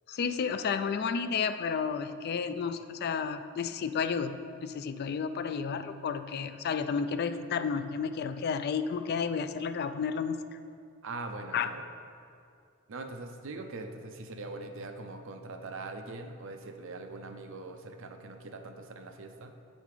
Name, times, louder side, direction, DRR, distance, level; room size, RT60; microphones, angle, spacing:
voice 1, 0.1-10.4 11.5-11.7, left 6 dB, 45° left, 10 dB, 0.3 m, -32 dB
voice 2, 11.0-11.8 12.9-19.5, right 3 dB, 60° right, 5 dB, 0.6 m, -42 dB
7.6 x 5.3 x 4.9 m, 2.4 s
head